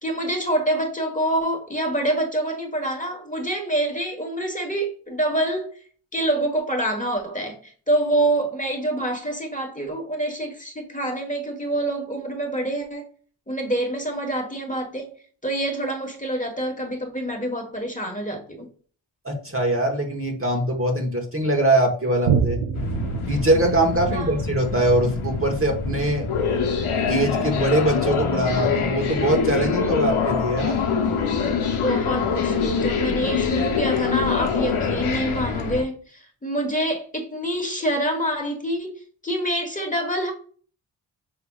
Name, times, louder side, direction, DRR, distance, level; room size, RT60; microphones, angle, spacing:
voice 1, 0.0-5.7 6.1-13.1 13.5-15.1 15.4-18.7 24.1-24.4 31.7-40.3, right 1 dB, 15° left, 1.3 m, -26 dB
voice 2, 19.2-22.6 23.3-26.3 27.1-30.8, right 1 dB, 25° right, 1.1 m, -22 dB
Boom, 22.2-29.2 29.7-29.8, right 7 dB, 65° right, 0.6 m, -30 dB
sound 1, 22.7-35.8, left 5 dB, 80° left, 0.9 m, -25 dB
5.7 x 3.3 x 2.3 m
cardioid pair, 50°, 49 cm